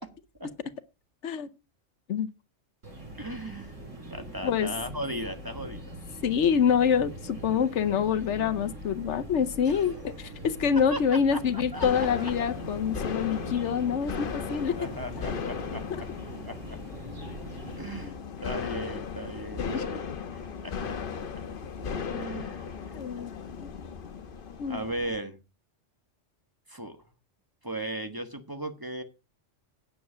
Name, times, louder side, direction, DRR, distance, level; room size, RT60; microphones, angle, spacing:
sound 1, 2.8-18.0, right 1 dB, 85° right, 5.1 m, -42 dB
voice 1, 3.2-3.8 4.1-6.0 9.7-9.9 10.9-11.4 11.7-12.1 14.8-16.1 16.5-16.8 17.8-18.1 18.4-20.0 20.3-21.0 22.1-22.7 24.7-25.4 26.7-27.0 27.6-29.0, right 1 dB, 20° right, 1.3 m, -37 dB
voice 2, 6.2-14.7 18.0-18.2 19.6-19.8 22.4-23.3 23.6-23.7 24.6-24.8, left 7 dB, 75° left, 1.1 m, -26 dB
sound 2, 11.7-25.2, left 6 dB, 50° left, 1.1 m, -36 dB
9.5 x 7.6 x 6.1 m
omnidirectional pair, 1.3 m